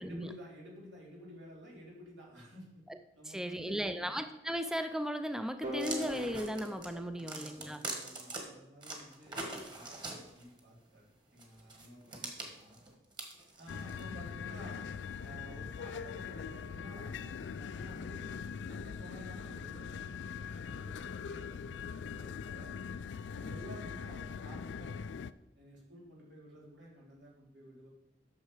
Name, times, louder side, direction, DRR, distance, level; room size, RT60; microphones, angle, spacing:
voice 1, 0.0-2.8 3.1-4.2 7.1-12.8 13.6-14.9 15.2-22.7 23.3-25.1 25.6-27.9, equal, 90° right, -4 dB, 3.4 m, -52 dB
voice 2, 3.3-7.8, equal, 5° right, 8 dB, 0.4 m, -36 dB
sound 1, 5.6-8.4, left 2 dB, 50° right, 2.5 m, -42 dB
sound 2, 5.8-8.4 8.8-10.6 11.4-14.0, right 2 dB, 25° right, 1.6 m, -42 dB
sound 3, 13.7-25.3, left 6 dB, 75° left, 0.4 m, -42 dB
9.7 x 6.5 x 4.9 m, 0.87 s
head